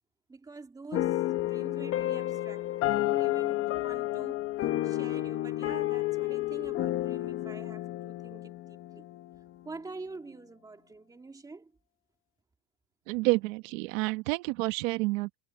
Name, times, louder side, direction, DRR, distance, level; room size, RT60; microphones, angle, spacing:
voice 1, 0.3-4.4 4.8-9.1 9.6-11.7, right 3 dB, 10° right, 3.0 m, -46 dB
sound 1, 0.9-9.5, left 15 dB, 35° left, 1.3 m, -31 dB
voice 2, 13.1-15.4, right 23 dB, 80° right, 1.4 m, -29 dB
cardioid pair, 175°, 39 cm